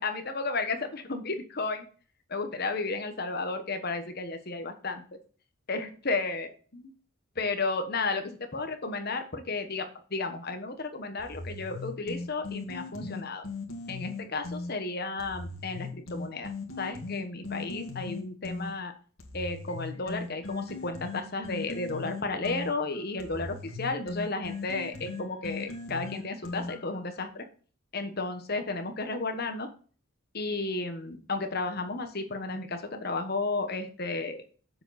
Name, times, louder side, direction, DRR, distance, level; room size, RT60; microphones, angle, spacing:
voice 1, 0.0-1.8 2.3-5.0 5.7-6.9 7.4-13.4 13.9-18.9 19.3-27.4 27.9-29.7 30.3-34.4, left 3 dB, 45° left, 7 dB, 1.2 m, -33 dB
sound 1, 11.2-14.7 15.2-18.7 19.2-27.0, left 3 dB, 75° left, 2.1 m, -38 dB
7.6 x 7.1 x 4.1 m, 0.40 s
head